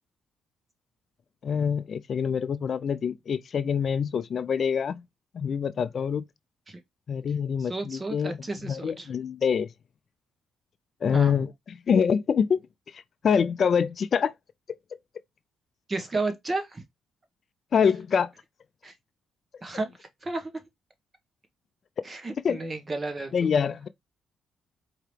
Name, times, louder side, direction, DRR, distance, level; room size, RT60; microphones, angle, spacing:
voice 1, 1.4-5.0 5.3-6.2 7.1-8.4 8.6-9.7 11.0-12.6 12.9-14.3 17.7-18.3 22.4-22.6 23.3-23.9, left 7 dB, 50° left, 0.3 m, -25 dB
voice 2, 7.6-9.1 11.1-11.3 15.9-16.8 18.8-18.9 19.6-19.9 20.2-20.5 22.0-23.5, right 3 dB, 25° right, 1.2 m, -32 dB
4.7 x 2.9 x 3.2 m
cardioid pair, 90°, 0 cm